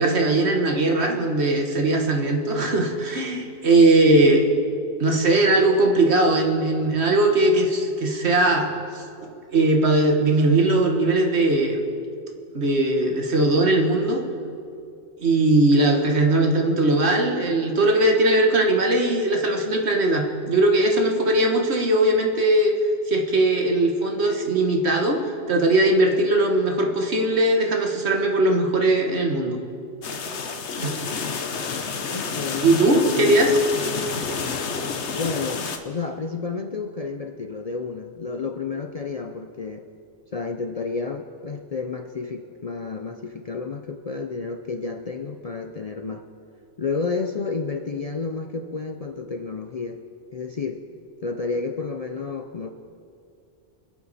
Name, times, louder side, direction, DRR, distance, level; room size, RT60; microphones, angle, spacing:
voice 1, 0.0-4.4 5.0-8.7 9.2-11.8 12.5-14.2 15.2-22.7 23.1-25.2 25.5-29.6 30.8-31.2 32.6-33.6, right 2 dB, 65° right, 2 dB, 1.7 m, -20 dB
sound 1, 30.0-35.8, left 5 dB, 75° left, 1.2 m, -29 dB
voice 2, 32.1-34.6 35.1-39.9 40.3-46.2 46.8-50.0 50.3-50.9 51.2-52.7, left 4 dB, 45° left, 6 dB, 0.5 m, -31 dB
25.5 x 8.7 x 4.1 m, 2.5 s
omnidirectional pair, 1.2 m